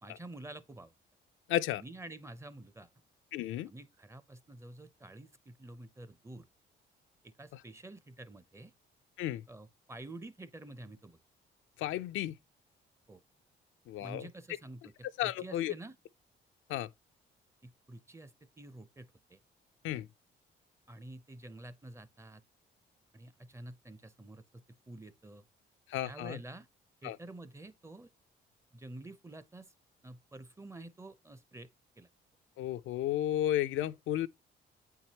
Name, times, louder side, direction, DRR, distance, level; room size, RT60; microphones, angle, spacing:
voice 1, 0.0-0.9 1.8-2.9 3.7-6.5 7.2-8.7 9.5-11.2 13.1-13.2 14.0-16.0 17.6-19.4 20.9-22.4 23.1-25.4 26.0-26.7 27.0-28.1 28.7-29.7 30.0-31.7 32.0-32.1, right 2 dB, 15° right, 0.5 m, -49 dB
voice 2, 1.5-1.8 3.3-3.7 9.2-9.4 11.8-12.4 13.9-14.3 15.2-15.7 16.7-16.9 19.8-20.1 25.9-26.4 27.0-27.2 32.6-34.3, left 13 dB, 80° left, 0.4 m, -33 dB
8.2 x 4.6 x 2.8 m
cardioid pair, 90°, 20 cm